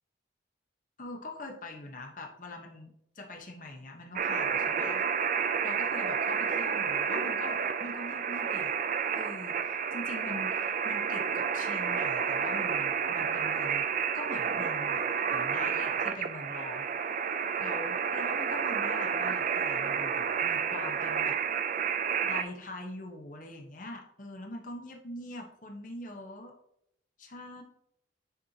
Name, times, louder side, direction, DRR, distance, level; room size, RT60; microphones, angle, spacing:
voice 1, 1.0-5.1 5.6-8.7 9.1-13.9 14.1-15.0 15.3-16.9 17.6-21.4 22.2-26.5 27.2-27.6, left 2 dB, 40° left, 2 dB, 1.0 m, -43 dB
sound 1, 4.2-22.4, right 7 dB, 40° right, 0.4 m, -30 dB
9.4 x 4.4 x 2.8 m, 0.74 s
head